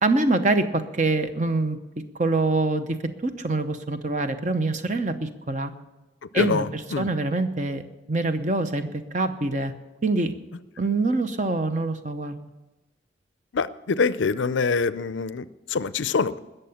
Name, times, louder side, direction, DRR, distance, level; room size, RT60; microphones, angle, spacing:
voice 1, 0.0-5.7 6.3-9.7 10.0-10.3 10.8-12.4, right 2 dB, 40° right, 8 dB, 0.8 m, -25 dB
voice 2, 6.3-7.1 13.5-16.4, left 4 dB, 70° left, 16 dB, 0.5 m, -25 dB
20.0 x 6.8 x 7.1 m, 1.1 s
head